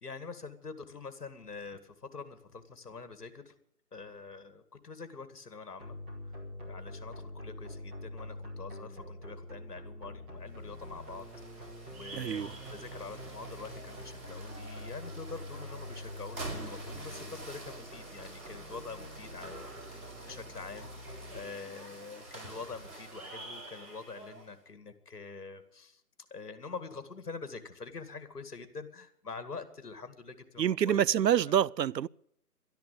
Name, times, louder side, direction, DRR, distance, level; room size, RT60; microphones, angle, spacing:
voice 1, 0.0-3.5 3.9-6.0 6.2-11.3 11.5-26.0 26.3-31.0 31.5-31.6, left 4 dB, 70° left, 2.2 m, -45 dB
sound 1, 5.8-21.4, left 1 dB, 5° right, 1.5 m, -45 dB
sound 2, 10.5-24.6, right 2 dB, 60° right, 7.5 m, -47 dB
voice 2, 12.2-12.5 30.6-32.1, right 9 dB, 85° right, 0.6 m, -27 dB
12.5 x 10.5 x 9.1 m
figure-of-eight pair, 165°, 48 cm